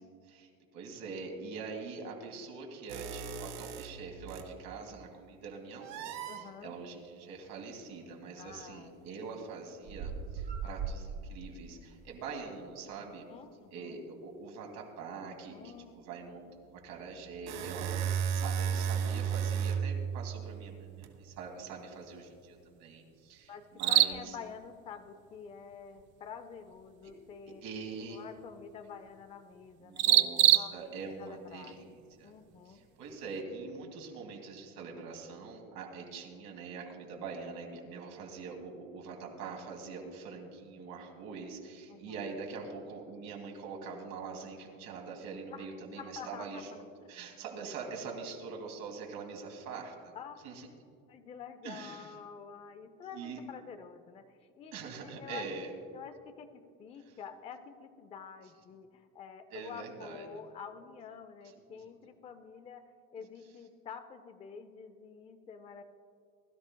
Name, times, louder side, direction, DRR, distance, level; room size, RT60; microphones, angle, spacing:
voice 1, 0.2-13.2 13.7-24.4 27.6-28.2 29.8-32.3 32.6-50.1 50.4-50.7 51.6-52.1 53.1-53.4 54.7-55.7 59.5-60.3, right 4 dB, 70° right, 1 dB, 2.7 m, -44 dB
sound 1, 2.9-4.5 5.8-6.4 8.5-8.6 9.9-11.4 16.9-21.1, right 7 dB, 90° right, 1.6 m, -35 dB
voice 2, 6.3-6.7 8.4-9.2 13.0-14.0 15.5-16.0 23.5-27.6 28.1-30.9 31.2-31.9 32.2-32.8 41.9-42.3 45.5-45.7 46.0-46.6 50.1-50.4 51.1-55.5 55.9-65.8, left 6 dB, 20° left, 8 dB, 0.4 m, -48 dB
sound 2, 19.1-33.4, right 12 dB, 40° right, 0.4 m, -34 dB
21.5 x 12.5 x 2.2 m, 2.4 s
cardioid pair, 170°, 31 cm